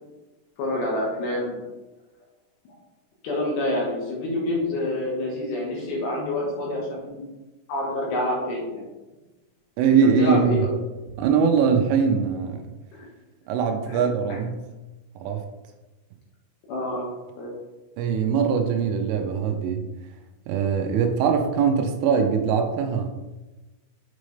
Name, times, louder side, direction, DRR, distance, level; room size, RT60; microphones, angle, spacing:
voice 1, 0.6-1.6 3.2-7.2 7.7-8.8 10.2-10.7 12.9-13.1 13.9-14.0 14.3-14.4 16.7-17.1 17.4-17.5, left 1 dB, 65° left, -3 dB, 3.2 m, -27 dB
voice 2, 9.8-10.6 11.2-12.7 13.5-14.7 15.2-15.5 18.0-19.9 20.5-23.2, right 6 dB, 85° right, 5 dB, 3.1 m, -22 dB
8.4 x 5.2 x 3.3 m, 1.1 s
omnidirectional pair, 5.8 m